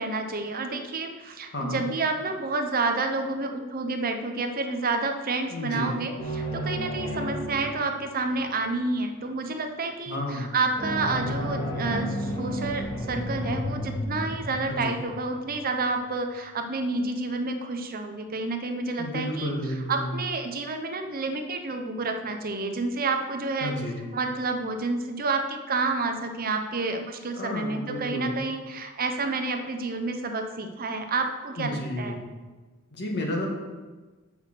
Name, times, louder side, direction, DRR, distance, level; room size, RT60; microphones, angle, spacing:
voice 1, 0.0-19.5 19.9-23.8 24.1-32.1, right 3 dB, 45° right, 5 dB, 0.7 m, -29 dB
voice 2, 1.5-1.8 5.5-6.0 10.1-10.5 14.7-15.0 19.0-20.1 23.6-24.1 27.4-28.4 31.6-32.1 32.9-33.5, left 1 dB, 50° left, 0 dB, 1.7 m, -31 dB
sound 1, 6.2-8.4 10.8-15.8, equal, 35° left, 1.9 m, -32 dB
6.6 x 6.2 x 6.6 m, 1.3 s
head